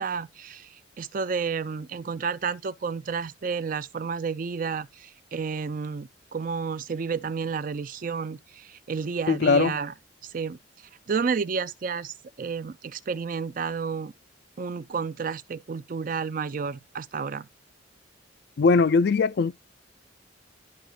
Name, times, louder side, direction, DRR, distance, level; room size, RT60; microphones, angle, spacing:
voice 1, 0.0-9.9 10.2-10.6 11.1-14.1 14.6-17.5, right 5 dB, 45° right, 0.4 m, -31 dB
voice 2, 9.3-9.7 18.6-19.5, left 4 dB, 55° left, 0.4 m, -20 dB
11.5 x 5.0 x 2.3 m
head